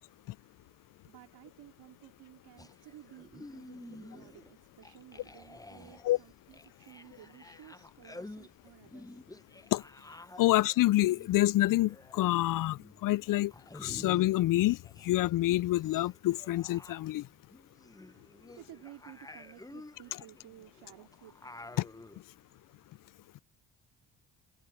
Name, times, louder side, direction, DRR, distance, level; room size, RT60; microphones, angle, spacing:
voice 1, 0.2-9.3 10.5-10.6 18.0-21.4, right 14 dB, 75° right, 3.0 m, -55 dB
sound 1, 2.6-4.5 4.8-15.1 15.3-22.2, left 2 dB, 10° left, 1.0 m, -51 dB
sound 2, 7.9-15.9, left 3 dB, 25° left, 6.8 m, -70 dB
voice 2, 10.4-13.5 13.8-14.8 15.0-17.2 21.8-21.9, left 16 dB, 55° left, 0.5 m, -27 dB
supercardioid pair, 55°, 41 cm